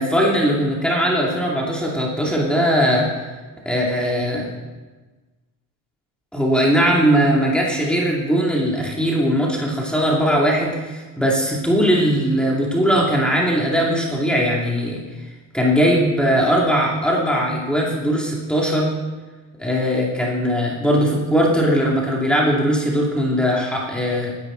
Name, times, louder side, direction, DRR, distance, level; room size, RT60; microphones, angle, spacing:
voice 1, 0.0-3.1 3.6-4.6 6.3-15.0 15.5-18.9 19.6-24.3, equal, 5° left, -4 dB, 2.5 m, -19 dB
20.5 x 10.5 x 3.9 m, 1.3 s
cardioid pair, 120°, 35 cm